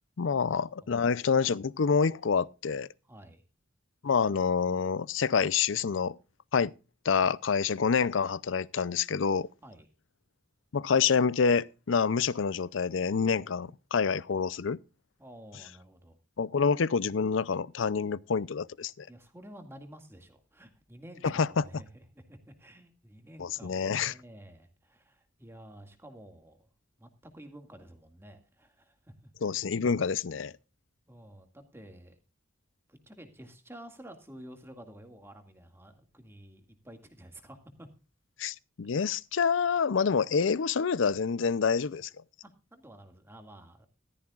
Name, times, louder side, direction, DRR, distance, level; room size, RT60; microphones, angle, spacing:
voice 1, 0.2-2.9 4.0-6.2 6.5-6.7 7.0-9.5 10.7-14.8 16.4-19.1 21.2-21.6 23.4-24.1 29.4-30.5 38.4-42.1, left 6 dB, 75° left, 0.5 m, -27 dB
voice 2, 0.8-1.2 3.1-3.4 9.6-9.9 15.2-16.2 19.1-26.7 27.0-29.6 31.1-32.2 32.9-37.9 42.4-43.9, right 1 dB, 10° right, 2.1 m, -51 dB
15.0 x 13.5 x 2.4 m
head